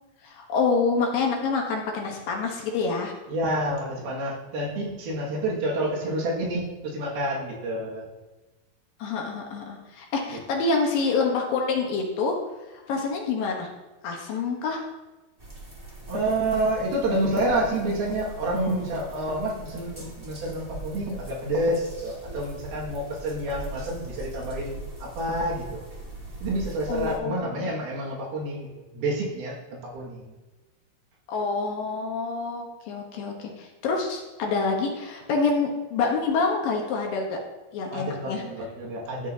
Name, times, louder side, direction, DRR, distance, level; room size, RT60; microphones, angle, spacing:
voice 1, 0.2-3.1 9.0-12.4 12.7-13.7 14.0-14.8 26.9-27.6 31.3-37.4 37.7-38.4, left 4 dB, 70° left, 1 dB, 2.7 m, -27 dB
voice 2, 3.3-8.1 16.1-24.8 25.0-25.8 26.4-30.3 37.9-39.3, right 1 dB, 75° right, -3 dB, 3.8 m, -28 dB
sound 1, 15.4-27.2, right 2 dB, 15° right, 1.4 m, -40 dB
13.5 x 8.1 x 2.8 m, 1.1 s
omnidirectional pair, 4.5 m